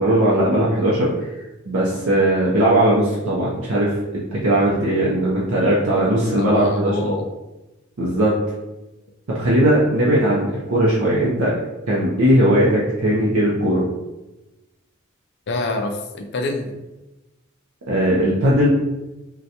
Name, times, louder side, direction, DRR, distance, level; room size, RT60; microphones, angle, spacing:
voice 1, 0.0-1.3 1.7-7.1 8.0-8.3 9.3-11.5 11.9-13.8 17.9-18.7, right 1 dB, 70° right, -5 dB, 0.6 m, -18 dB
voice 2, 6.3-7.3 15.5-16.7, left 2 dB, 55° left, 4 dB, 0.4 m, -26 dB
3.8 x 2.2 x 2.8 m, 1.0 s
head